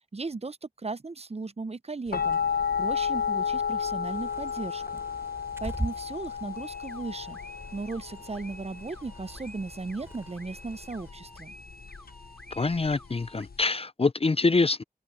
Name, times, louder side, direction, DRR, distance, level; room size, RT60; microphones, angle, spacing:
voice 1, 0.1-2.4 2.8-5.0 5.6-7.4 7.7-11.5, right 3 dB, 40° right, 0.7 m, -36 dB
sound 1, 2.1-13.6, left 7 dB, 65° left, 1.0 m, -32 dB
Bird, 4.0-11.1, right 1 dB, 15° right, 3.6 m, -42 dB
sound 2, 6.6-13.5, equal, 5° left, 6.2 m, -50 dB
voice 2, 12.5-14.8, left 3 dB, 35° left, 0.5 m, -25 dB
open air
cardioid pair, 45°, 17 cm